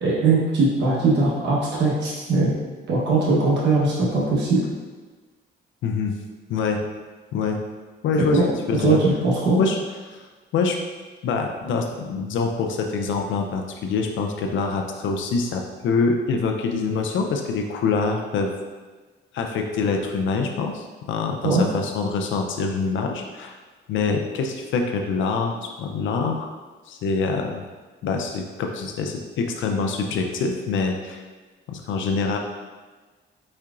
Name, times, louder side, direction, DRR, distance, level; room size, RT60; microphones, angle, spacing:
voice 1, 0.0-2.5 2.9-4.6 8.3-8.5 8.8-9.6 21.4-21.6, right 3 dB, 60° right, -6 dB, 1.1 m, -20 dB
voice 2, 5.8-6.1 6.5-6.8 7.3-7.6 8.0-8.4 8.7-9.0 9.5-9.8 10.0-10.2 10.5-10.8 11.2-18.5 19.3-23.5 23.9-26.5 26.9-27.6 28.0-31.2 31.7-32.4, left 4 dB, 75° left, 3 dB, 0.5 m, -25 dB
4.5 x 4.3 x 2.5 m, 1.3 s
cardioid pair, 90°, 20 cm